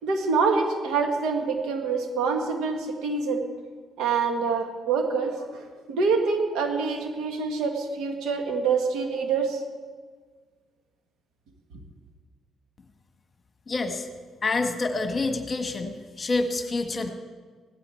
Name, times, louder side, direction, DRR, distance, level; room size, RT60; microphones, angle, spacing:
voice 1, 0.0-3.4 4.0-9.6, right 4 dB, 90° right, 4 dB, 1.8 m, -26 dB
voice 2, 13.7-14.1 14.4-17.1, left 3 dB, 35° left, 6 dB, 1.3 m, -27 dB
16.5 x 12.5 x 4.5 m, 1.5 s
cardioid pair, 90°, 0 cm